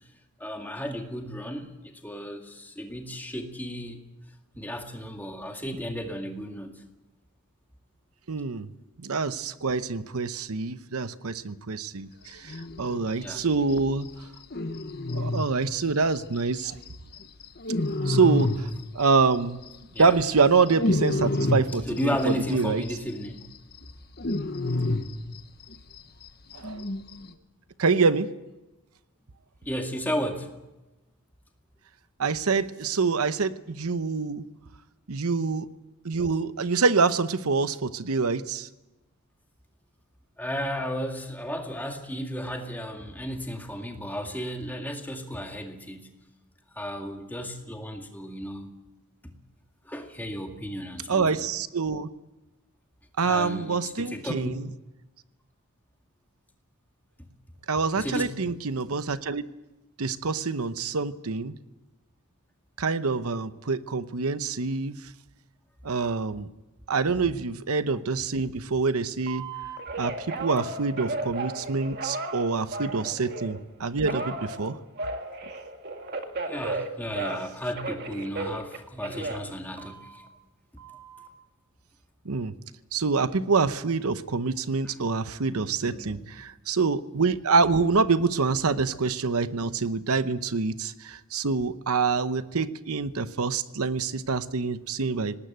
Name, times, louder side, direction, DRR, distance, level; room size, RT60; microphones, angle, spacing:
voice 1, 0.4-4.0 4.6-6.8 13.2-13.4 19.9-20.2 21.9-23.5 29.6-30.5 40.4-46.1 46.7-48.7 49.8-51.5 53.2-54.5 57.9-58.3 76.5-80.2 80.7-80.8 85.8-86.3 89.6-89.7, equal, 10° left, 3 dB, 2.1 m, -34 dB
voice 2, 8.3-8.7 9.0-14.1 15.1-16.8 18.0-18.7 18.9-19.6 20.0-22.8 26.5-26.8 27.8-28.4 32.2-34.4 35.1-35.7 36.0-38.7 51.1-52.1 53.2-54.7 57.7-59.4 60.0-61.6 62.8-65.1 65.8-66.5 66.9-69.5 70.0-74.8 82.2-82.5 82.9-95.4, right 4 dB, 85° right, 13 dB, 0.9 m, -26 dB
sound 1, 12.5-13.1 13.4-13.5 13.7-13.8 14.0-14.1 14.4-16.9 17.1-19.4 19.6-22.5 22.8-22.9 23.2-26.0 26.2-26.3 26.5-27.3, left 2 dB, 45° left, 1.1 m, -29 dB
Telephone, 69.3-73.6 74.0-77.5 77.8-80.3 80.8-81.3, right 2 dB, 45° right, 2.0 m, -35 dB
19.0 x 19.0 x 9.2 m, 1.0 s
head